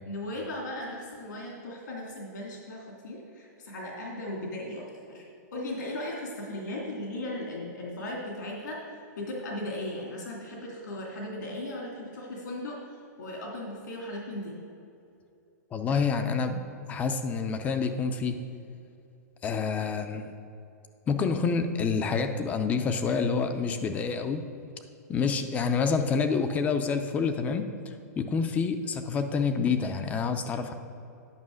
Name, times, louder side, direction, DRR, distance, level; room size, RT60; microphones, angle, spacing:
voice 1, 0.1-8.8 9.2-12.8 13.2-14.6, left 1 dB, 85° left, -3 dB, 2.4 m, -37 dB
voice 2, 15.7-16.6 16.9-18.4 19.4-20.3 21.1-24.5 25.1-30.7, left 5 dB, 15° left, 8 dB, 0.4 m, -28 dB
9.8 x 5.5 x 6.3 m, 2.6 s
hypercardioid pair, 155°, 9 cm